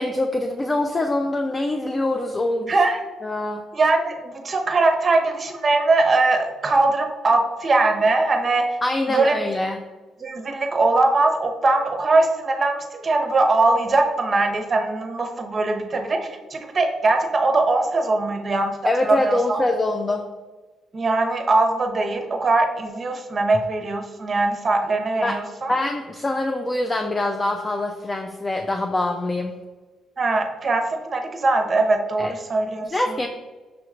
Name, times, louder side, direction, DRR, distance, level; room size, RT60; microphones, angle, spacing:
voice 1, 0.0-2.8 3.2-3.6 8.8-9.8 18.8-20.3 25.2-25.4 25.7-29.5 32.2-32.3 32.9-33.3, left 2 dB, 25° left, 4 dB, 0.3 m, -24 dB
voice 2, 2.7-3.0 3.7-8.7 9.1-9.4 10.2-18.7 19.0-19.6 20.9-25.7 30.2-32.9, right 2 dB, 35° right, 4 dB, 0.7 m, -21 dB
5.9 x 3.0 x 2.4 m, 1.3 s
cardioid pair, 90°, 0 cm